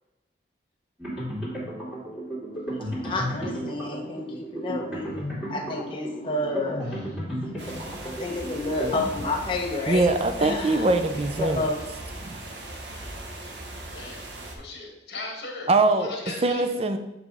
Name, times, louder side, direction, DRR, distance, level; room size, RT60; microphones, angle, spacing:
sound 1, 1.0-9.6, equal, 5° right, 2.3 m, -34 dB
voice 1, 3.0-6.9 8.0-10.1 10.4-10.9 11.4-11.8, left 2 dB, 30° left, 0 dB, 0.9 m, -30 dB
sound 2, 7.6-14.6, right 1 dB, 85° right, 1.1 m, -39 dB
voice 2, 9.9-11.7 12.2-12.4 15.7-16.1 16.4-17.0, right 2 dB, 35° right, 8 dB, 0.5 m, -22 dB
voice 3, 13.9-14.2 14.5-16.6, left 3 dB, 65° left, 0 dB, 1.7 m, -38 dB
7.4 x 3.4 x 4.8 m, 0.97 s
head